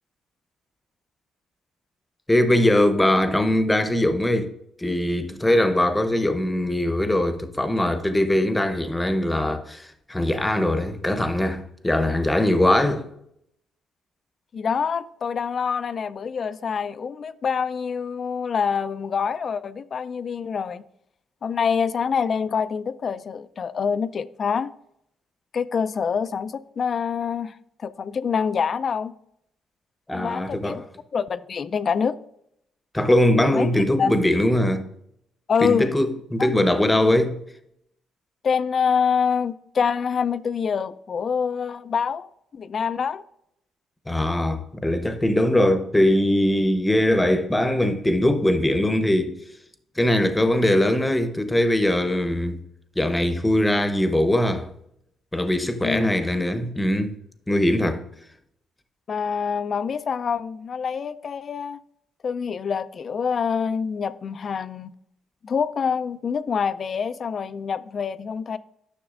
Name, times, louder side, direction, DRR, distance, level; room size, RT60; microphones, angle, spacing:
voice 1, 2.3-4.5 4.8-13.1 30.1-30.8 32.9-34.8 35.6-37.4 44.1-49.4 50.0-52.6 53.0-54.7 55.3-57.1 57.5-58.0, left 1 dB, 10° left, 0.8 m, -21 dB
voice 2, 14.5-20.8 21.4-24.7 25.5-29.1 30.1-30.8 31.1-32.2 33.5-34.2 35.5-35.9 36.4-36.6 38.4-43.2 55.8-56.3 59.1-61.8 62.2-64.9 65.4-68.6, left 6 dB, 50° left, 0.3 m, -26 dB
10.0 x 6.1 x 2.5 m
cardioid pair, 90°, 0 cm